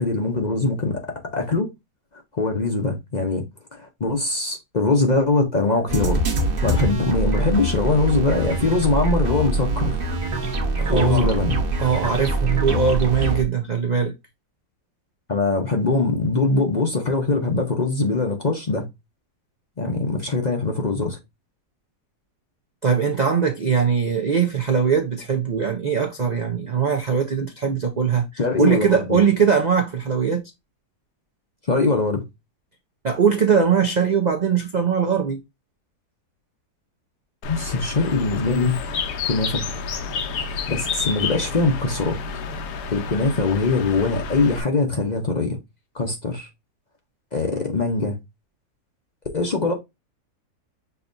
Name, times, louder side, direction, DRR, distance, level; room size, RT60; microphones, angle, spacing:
voice 1, 0.0-1.7 2.3-3.5 3.7-6.2 6.6-10.0 10.9-11.6 15.3-18.9 19.8-21.2 28.4-29.2 31.6-32.2 37.5-38.8 39.2-39.6 40.7-42.2 42.9-45.6 45.9-46.5 47.3-48.2 49.3-49.7, left 3 dB, 40° left, 0.6 m, -22 dB
sound 1, 5.9-13.4, right 2 dB, 40° right, 1.1 m, -24 dB
voice 2, 10.8-11.3 11.8-14.1 22.8-30.5 33.0-35.4, right 6 dB, 70° right, 0.4 m, -21 dB
Bird, 37.4-44.6, left 5 dB, 80° left, 1.3 m, -30 dB
6.7 x 2.9 x 2.5 m
omnidirectional pair, 1.7 m